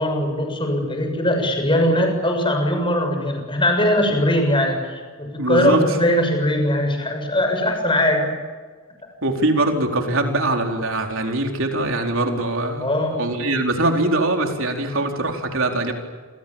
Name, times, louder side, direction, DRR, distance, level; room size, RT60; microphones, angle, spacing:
voice 1, 0.0-8.3 12.8-13.2, left 1 dB, 25° left, 4 dB, 6.9 m, -20 dB
voice 2, 5.4-5.8 9.2-15.9, right 2 dB, 60° right, 3 dB, 4.6 m, -22 dB
29.0 x 27.5 x 7.4 m, 1.5 s
head